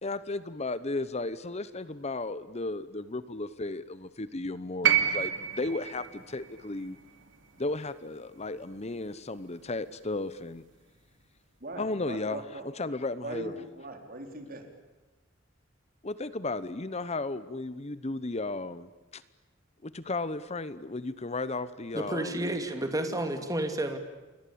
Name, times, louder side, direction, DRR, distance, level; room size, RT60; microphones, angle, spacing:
voice 1, 0.0-7.0 7.6-10.6 11.8-12.4 12.8-13.5 16.0-19.2 19.8-22.4, left 2 dB, 35° left, 15 dB, 0.9 m, -34 dB
sound 1, 4.8-9.0 10.2-10.3, right 10 dB, 70° right, 3.1 m, -30 dB
voice 2, 11.6-12.6 13.2-14.7 22.4-22.5, right 1 dB, 50° right, 5 dB, 4.4 m, -40 dB
voice 3, 21.9-24.0, right 1 dB, 20° right, 7 dB, 2.7 m, -31 dB
29.0 x 22.5 x 8.7 m, 1.2 s
head